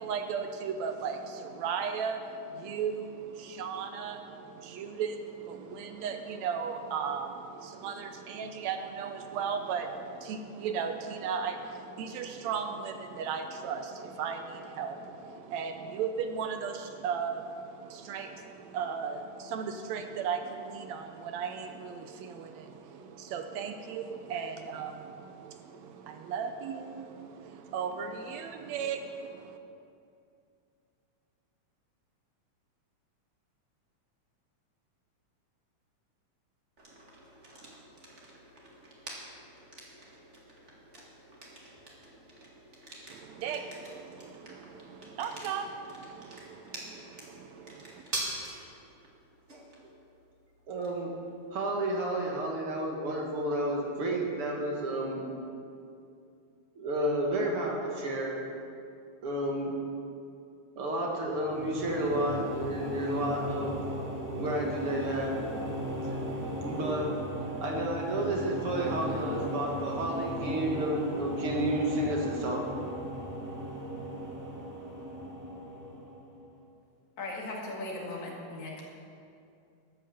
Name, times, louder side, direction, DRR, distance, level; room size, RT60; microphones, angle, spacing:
voice 1, 0.0-29.6 43.1-48.0, right 6 dB, 75° right, 7 dB, 1.9 m, -36 dB
sound 1, 36.8-54.5, right 2 dB, 25° right, 1.9 m, -46 dB
voice 2, 50.7-51.1 51.5-55.3 56.8-58.4 59.2-59.8 60.8-63.9 64.3-65.3 66.0-66.2 66.6-67.1 67.6-72.7, right 1 dB, 55° right, -1 dB, 2.2 m, -31 dB
sound 2, 61.2-76.5, equal, 10° right, 1.1 m, -36 dB
voice 3, 77.2-78.8, left 2 dB, 75° left, -3 dB, 3.5 m, -38 dB
13.0 x 8.7 x 7.0 m, 2.5 s
omnidirectional pair, 3.4 m